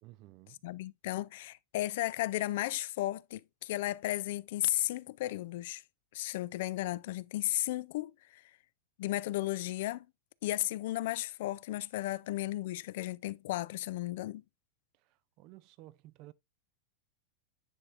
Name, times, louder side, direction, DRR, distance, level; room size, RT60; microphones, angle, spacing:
voice 1, 0.0-0.6 15.4-16.3, right 17 dB, 40° right, 0.4 m, -53 dB
voice 2, 0.6-5.8 6.1-8.4 9.0-10.1 10.4-14.4, left 16 dB, 60° left, 0.3 m, -34 dB
9.9 x 4.3 x 2.4 m
supercardioid pair, 150°, 0 cm